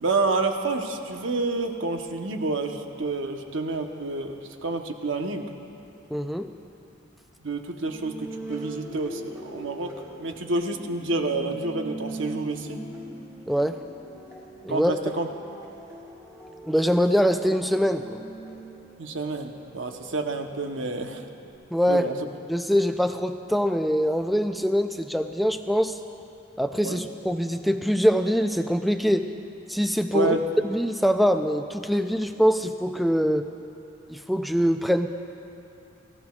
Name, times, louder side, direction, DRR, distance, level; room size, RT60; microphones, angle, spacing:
voice 1, 0.0-5.5 7.4-9.9 10.2-12.8 14.7-15.3 19.0-21.2 21.9-22.2 26.8-27.0 30.1-30.4, right 3 dB, 70° right, 4 dB, 0.9 m, -28 dB
voice 2, 6.1-6.5 13.5-13.8 14.6-14.9 16.7-18.2 21.7-22.1 22.5-26.0 26.6-29.3 29.7-30.3 30.6-33.5 34.1-35.1, equal, ahead, 7 dB, 0.4 m, -23 dB
sound 1, 7.8-21.5, right 1 dB, 15° right, 2.7 m, -42 dB
22.5 x 15.0 x 2.4 m, 2.7 s
head